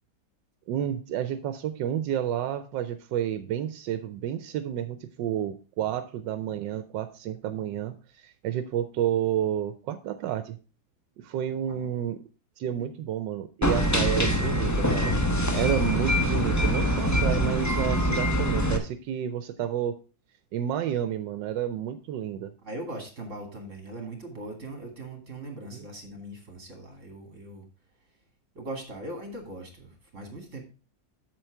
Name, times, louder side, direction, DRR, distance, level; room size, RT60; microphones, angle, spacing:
voice 1, 0.7-10.6 11.2-12.2 12.6-15.1 15.5-20.0 20.5-22.5 25.7-25.8, right 10 dB, 85° right, 11 dB, 1.3 m, -30 dB
sound 1, 13.6-18.8, equal, 15° left, 0.5 m, -24 dB
voice 2, 22.6-27.7 28.5-30.6, right 1 dB, 40° right, 4 dB, 2.6 m, -40 dB
7.7 x 7.0 x 4.6 m, 0.35 s
omnidirectional pair, 1.9 m